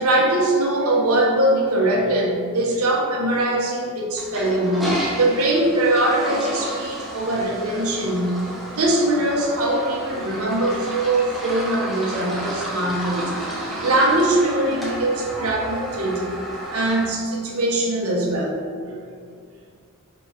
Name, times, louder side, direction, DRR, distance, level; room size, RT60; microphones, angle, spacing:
voice 1, 0.0-13.5 13.8-16.3 16.7-18.6 18.9-19.0, right 1 dB, 80° right, -1 dB, 1.1 m, -22 dB
Toilet flush, 4.1-17.1, right 1 dB, ahead, 0.9 m, -31 dB
5.3 x 4.4 x 4.6 m, 2.2 s
head